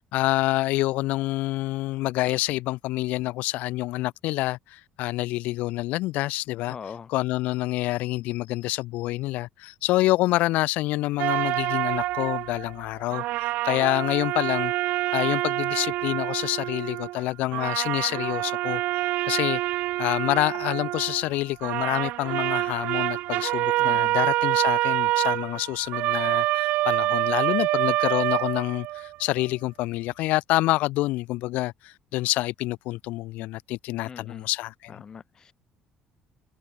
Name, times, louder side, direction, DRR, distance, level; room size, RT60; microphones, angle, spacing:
voice 1, 0.1-6.8 7.1-14.7 15.1-19.6 20.0-34.9, left 18 dB, 80° left, 0.9 m, -27 dB
voice 2, 6.7-7.1 23.8-24.2 34.0-34.5 34.9-35.5, left 6 dB, 25° left, 2.8 m, -41 dB
sound 1, 11.2-12.9 13.1-17.3 17.5-21.4 21.6-29.2, right 17 dB, 75° right, 1.9 m, -26 dB
cardioid pair, 175°, 3 cm